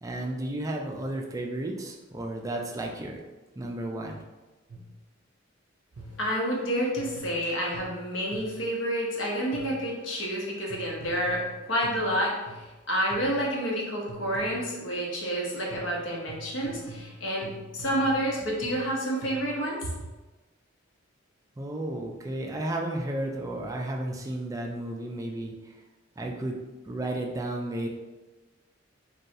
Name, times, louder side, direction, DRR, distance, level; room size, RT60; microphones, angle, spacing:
voice 1, 0.0-3.2 3.6-4.2 21.6-25.5 26.2-26.6 26.8-27.9, right 1 dB, 15° right, 1 dB, 0.3 m, -33 dB
sound 1, 4.7-5.1 6.0-6.4 7.0-8.8 9.5-10.0 10.7-12.8 13.1-13.6 14.1-14.9 15.7-19.7, right 1 dB, 80° right, 0.5 m, -45 dB
voice 2, 6.2-11.4 11.7-19.9, equal, 65° left, -3 dB, 0.9 m, -29 dB
2.6 x 2.3 x 4.0 m, 1.2 s
head